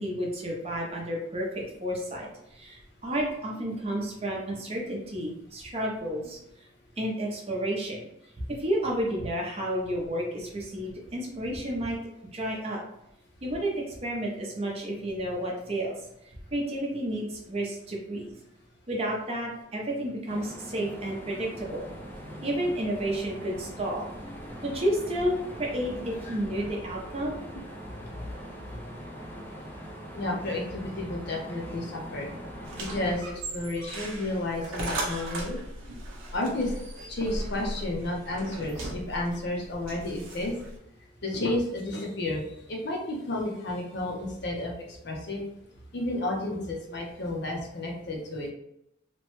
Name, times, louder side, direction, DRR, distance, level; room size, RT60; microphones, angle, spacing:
voice 1, 0.0-6.4 7.0-8.0 8.5-12.0 12.3-12.8 13.4-15.9 16.5-18.3 18.9-21.9 22.4-24.1 24.6-27.4, right 1 dB, 30° right, -2 dB, 0.6 m, -31 dB
sound 1, 20.3-33.2, equal, 10° left, 0.3 m, -42 dB
voice 2, 28.0-28.3 28.7-28.8 30.1-32.3 32.8-35.6 36.3-36.7 37.1-40.5 41.2-45.4 45.9-48.5, left 1 dB, 55° left, 0 dB, 0.6 m, -32 dB
sound 2, 32.6-40.8, right 1 dB, 80° right, 0.7 m, -37 dB
2.9 x 2.2 x 3.0 m, 0.81 s
head